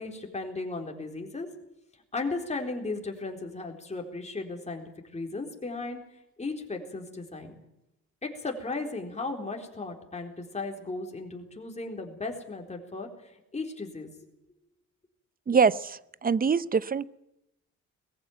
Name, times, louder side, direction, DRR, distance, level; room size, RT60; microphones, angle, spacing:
voice 1, 0.0-1.5 2.1-4.8 5.1-6.0 6.4-7.5 8.2-14.1, left 3 dB, 20° left, 2 dB, 4.1 m, -36 dB
voice 2, 15.5-17.1, right 6 dB, 30° right, 18 dB, 0.7 m, -24 dB
20.0 x 15.0 x 9.4 m, 0.86 s
cardioid pair, 90°, 30 cm